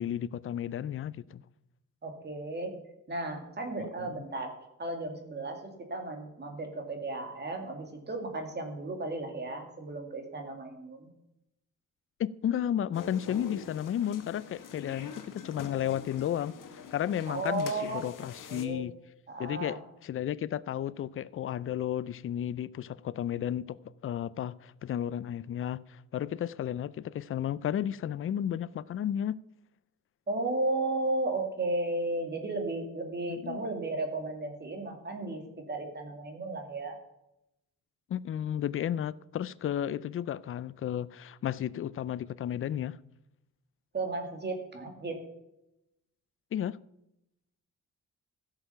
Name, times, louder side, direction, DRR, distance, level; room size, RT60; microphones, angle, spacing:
voice 1, 0.0-1.4 3.8-4.2 12.2-18.9 19.4-23.8 24.0-29.4 33.3-33.6 38.1-43.0 46.5-46.8, left 10 dB, 40° left, 0.4 m, -33 dB
voice 2, 2.0-2.8 3.1-11.1 17.3-18.1 18.5-18.8 19.3-19.8 30.3-35.4 35.7-37.0 43.9-45.2, right 2 dB, 30° right, 2.2 m, -34 dB
sound 1, 12.9-18.7, left 6 dB, 75° left, 1.4 m, -45 dB
15.5 x 6.8 x 5.7 m
cardioid pair, 130°, 32 cm